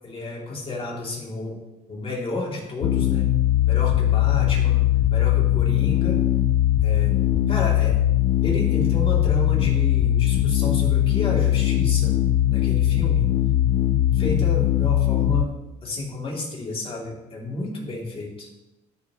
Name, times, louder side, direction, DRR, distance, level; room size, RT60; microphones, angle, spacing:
voice 1, 0.0-1.6 1.9-3.3 3.7-4.8 5.1-6.2 6.8-7.1 7.5-8.0 8.4-12.2 12.5-13.2 14.1-15.5 15.8-18.5, left 2 dB, 35° left, -3 dB, 2.8 m, -31 dB
sound 1, 2.8-15.5, left 12 dB, 65° left, 0.6 m, -20 dB
12.5 x 6.1 x 3.0 m, 0.95 s
cardioid pair, 110°, 17 cm